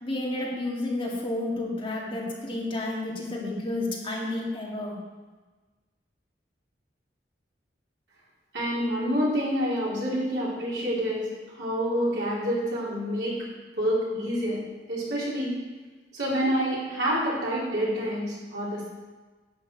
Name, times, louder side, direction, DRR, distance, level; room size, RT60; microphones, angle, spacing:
voice 1, 0.0-5.0, left 2 dB, 30° left, -3 dB, 2.1 m, -31 dB
voice 2, 8.5-13.4 13.8-14.6 14.9-15.5 16.1-18.9, equal, 75° right, -6 dB, 4.1 m, -27 dB
11.0 x 8.6 x 4.7 m, 1.3 s
head